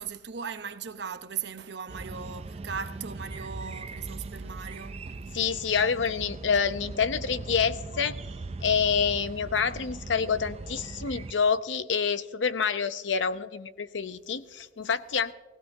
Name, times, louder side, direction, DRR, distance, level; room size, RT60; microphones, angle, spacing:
voice 1, 0.0-5.0, right 7 dB, 65° right, 0.8 m, -38 dB
sound 1, 1.9-11.3, right 3 dB, 35° right, 0.4 m, -39 dB
voice 2, 5.3-8.2 8.6-15.3, left 6 dB, 85° left, 0.7 m, -27 dB
18.0 x 16.5 x 2.7 m
head